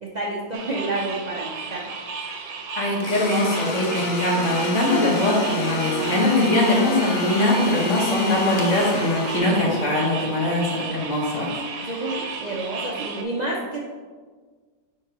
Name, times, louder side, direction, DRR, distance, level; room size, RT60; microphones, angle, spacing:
voice 1, 0.0-1.9 11.9-13.8, right 2 dB, 80° right, -2 dB, 0.3 m, -29 dB
sound 1, 0.5-13.2, right 4 dB, 65° right, 1.1 m, -34 dB
voice 2, 2.8-12.2, left 1 dB, 50° left, -3 dB, 1.6 m, -22 dB
Domestic sounds home sounds, 3.0-10.1, left 2 dB, 85° left, 1.4 m, -30 dB
9.3 x 3.7 x 3.0 m, 1.5 s
omnidirectional pair, 1.7 m